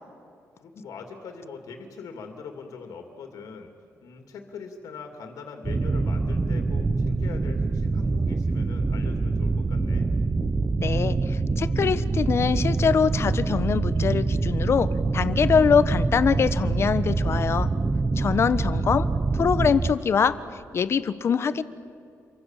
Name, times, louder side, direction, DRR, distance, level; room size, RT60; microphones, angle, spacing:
voice 1, 0.6-3.7 4.0-10.1 18.2-18.6, left 5 dB, 85° left, 5 dB, 2.6 m, -42 dB
sound 1, 5.6-19.9, right 3 dB, 25° right, 0.8 m, -25 dB
voice 2, 10.8-17.7 18.2-19.1 19.3-20.4 20.7-21.6, left 6 dB, 50° left, 14 dB, 1.2 m, -23 dB
29.5 x 24.5 x 7.4 m, 2.5 s
cardioid pair, 125°, 6 cm